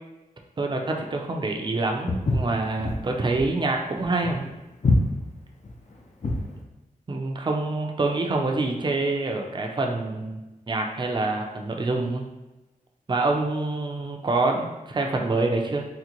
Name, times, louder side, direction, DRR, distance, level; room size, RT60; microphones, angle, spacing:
voice 1, 0.6-4.5 7.1-10.4 10.7-12.2 13.1-15.9, right 2 dB, 30° right, 1 dB, 0.5 m, -26 dB
Walk footsteps, 2.1-6.5, left 2 dB, 50° left, 0.5 m, -26 dB
3.8 x 2.1 x 2.9 m, 1.0 s
wide cardioid pair, 75°, 15 cm